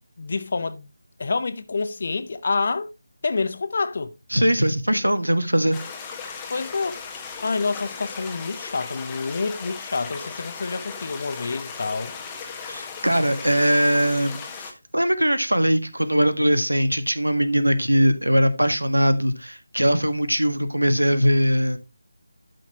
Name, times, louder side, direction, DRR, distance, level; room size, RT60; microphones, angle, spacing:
voice 1, 0.2-0.9 1.2-2.9 3.2-4.1 6.5-7.0 7.4-12.1, left 4 dB, 45° left, 0.8 m, -27 dB
voice 2, 4.3-5.8 12.7-21.8, equal, 85° right, 1.4 m, -21 dB
sound 1, 5.7-14.7, left 5 dB, 10° left, 1.2 m, -37 dB
12.0 x 5.8 x 2.9 m
figure-of-eight pair, 160°, 0 cm